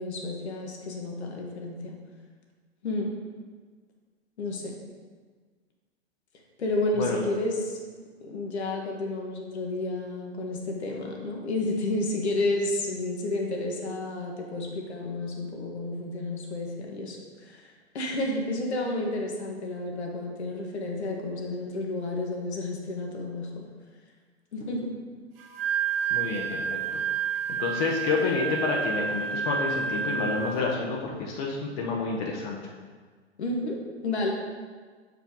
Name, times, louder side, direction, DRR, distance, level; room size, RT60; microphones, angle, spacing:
voice 1, 0.0-2.0 2.8-3.1 4.4-4.7 6.6-7.8 8.2-23.6 24.5-24.9 33.4-34.3, left 2 dB, 70° left, 0 dB, 1.4 m, -31 dB
voice 2, 6.9-7.3 26.1-27.0 27.5-32.6, left 4 dB, 40° left, -1 dB, 1.0 m, -29 dB
Wind instrument woodwind instrument, 25.4-30.7, right 7 dB, 55° right, 0.9 m, -30 dB
6.6 x 4.7 x 3.9 m, 1.5 s
figure-of-eight pair, 110°, 34 cm